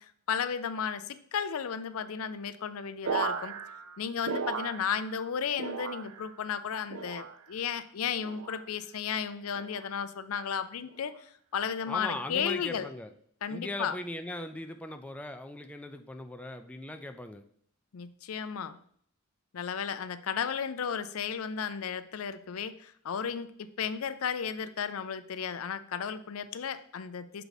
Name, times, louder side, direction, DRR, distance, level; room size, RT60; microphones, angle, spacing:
voice 1, 0.0-3.5 4.0-11.1 11.5-12.9 13.4-14.0 17.9-18.8 19.5-23.5 23.8-27.4, left 7 dB, 80° left, 12 dB, 0.5 m, -34 dB
sound 1, 3.0-5.3 5.5-6.4 6.9-7.6 8.2-8.7 9.5-9.9 10.9-11.2, right 5 dB, 80° right, 0.5 m, -36 dB
voice 2, 11.9-13.1 13.5-17.4, left 1 dB, 5° left, 6 dB, 0.4 m, -39 dB
6.7 x 4.6 x 4.0 m, 0.62 s
head